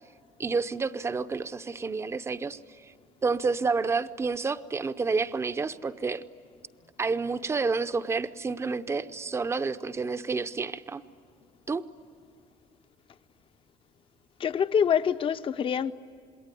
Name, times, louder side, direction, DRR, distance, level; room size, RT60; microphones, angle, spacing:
voice 1, 0.4-2.6 3.2-6.2 7.0-11.0 11.7-11.8, right 4 dB, 15° right, 0.6 m, -29 dB
voice 2, 14.4-15.9, left 8 dB, 35° left, 0.7 m, -25 dB
27.0 x 21.5 x 9.8 m
cardioid pair, 160°, 16 cm